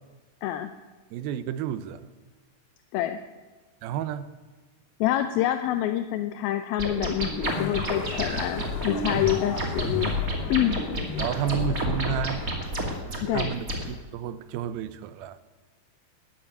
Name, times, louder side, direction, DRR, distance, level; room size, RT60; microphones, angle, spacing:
voice 1, 0.4-0.7 2.9-3.2 5.0-10.1 10.5-10.8 13.2-13.5, left 13 dB, 90° left, 2.6 m, -27 dB
voice 2, 1.1-2.0 3.8-4.3 11.2-12.4 13.3-15.4, right 10 dB, 85° right, 2.6 m, -31 dB
sound 1, 6.8-13.8, equal, 25° right, 2.5 m, -29 dB
Motorcycle, 7.4-12.5, left 9 dB, 75° left, 2.2 m, -39 dB
13.5 x 9.9 x 9.2 m
omnidirectional pair, 4.2 m